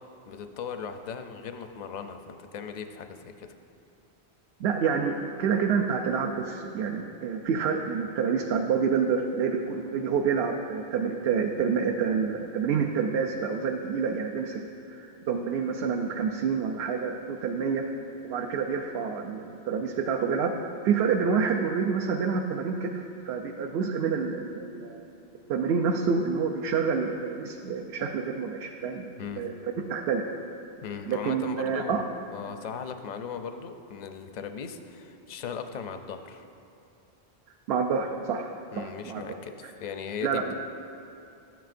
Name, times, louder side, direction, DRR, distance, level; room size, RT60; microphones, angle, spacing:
voice 1, 0.3-3.5 29.2-29.4 30.8-36.4 38.7-40.5, left 6 dB, 55° left, 7 dB, 0.5 m, -38 dB
voice 2, 4.6-14.6 14.9-17.8 18.2-20.5 20.8-25.0 25.5-29.0 29.4-29.5 29.9-30.2 31.1-32.0 37.7-38.5 38.8-39.2 40.2-40.4, right 6 dB, 70° right, 1 dB, 0.8 m, -28 dB
13.5 x 9.2 x 2.5 m, 2.7 s
omnidirectional pair, 1.1 m